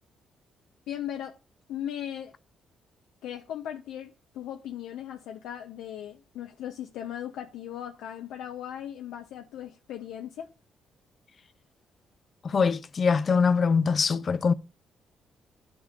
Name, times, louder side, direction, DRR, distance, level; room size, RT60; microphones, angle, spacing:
voice 1, 0.9-1.4 1.7-2.3 3.2-10.5, left 10 dB, 85° left, 0.6 m, -38 dB
voice 2, 12.4-14.5, left 5 dB, 45° left, 0.5 m, -23 dB
15.0 x 6.2 x 2.4 m
cardioid pair, 90°, 0 cm